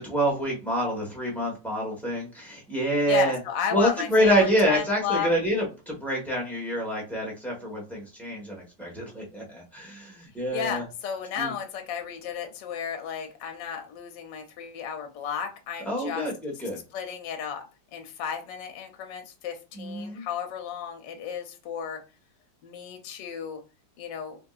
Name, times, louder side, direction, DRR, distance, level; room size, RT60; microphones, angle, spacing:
voice 1, 0.0-3.4 3.7-10.8 11.4-11.5 15.9-16.8 19.7-20.2, equal, ahead, -3 dB, 0.9 m, -27 dB
voice 2, 3.0-5.3 10.5-16.2 16.9-17.6 17.9-22.0 22.6-23.6 24.0-24.4, left 7 dB, 75° left, 5 dB, 1.3 m, -33 dB
3.6 x 2.6 x 2.4 m, 0.32 s
omnidirectional pair, 2.0 m